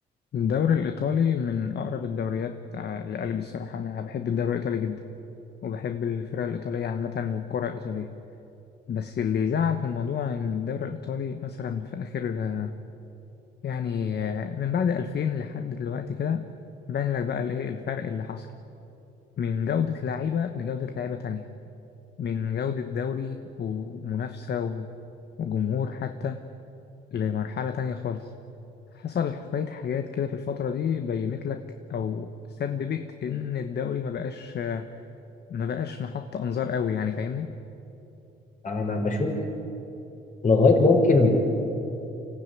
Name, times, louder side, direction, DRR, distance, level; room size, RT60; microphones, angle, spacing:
voice 1, 0.3-5.0 5.6-8.1 8.9-12.7 13.6-16.4 16.9-18.5 19.4-21.4 22.2-24.9 25.4-26.4 27.1-28.3 28.9-31.6 31.9-34.9 35.5-37.5, left 7 dB, 55° left, 7 dB, 1.1 m, -29 dB
voice 2, 38.6-39.4 40.4-41.5, left 3 dB, 40° left, 1 dB, 5.2 m, -20 dB
25.0 x 15.0 x 9.3 m, 2.9 s
cardioid pair, 90°, 20 cm